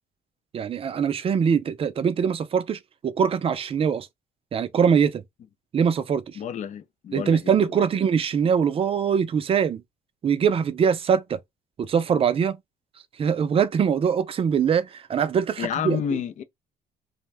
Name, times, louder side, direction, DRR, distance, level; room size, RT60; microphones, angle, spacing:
voice 1, 0.5-4.1 4.5-5.2 5.7-6.4 7.1-9.8 10.2-11.4 11.8-12.6 13.2-16.2, right 7 dB, 35° right, 0.4 m, -23 dB
voice 2, 6.4-7.9 15.6-16.4, left 8 dB, 45° left, 0.4 m, -30 dB
2.5 x 2.1 x 3.2 m
cardioid pair, 110°, 17 cm